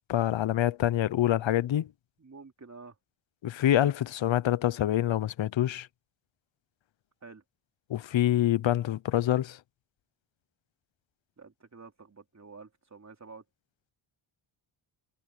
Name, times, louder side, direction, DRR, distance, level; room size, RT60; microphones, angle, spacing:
voice 1, 0.1-1.9 3.4-5.9 7.9-9.6, left 12 dB, 65° left, 0.8 m, -26 dB
voice 2, 2.2-2.9 7.2-7.4 11.4-13.4, right 4 dB, 35° right, 3.5 m, -49 dB
cardioid pair, 95°, 49 cm